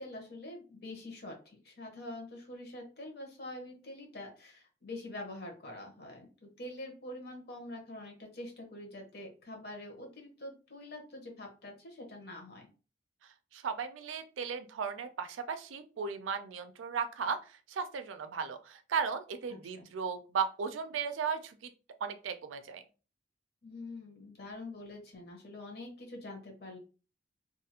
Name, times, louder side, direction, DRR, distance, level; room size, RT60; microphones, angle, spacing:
voice 1, 0.0-12.7 19.5-19.9 23.6-26.8, left 1 dB, 55° left, 2 dB, 0.9 m, -45 dB
voice 2, 13.5-17.4 17.7-21.7 22.0-22.8, right 6 dB, 90° right, 9 dB, 0.4 m, -36 dB
2.5 x 2.4 x 2.8 m, 0.34 s
head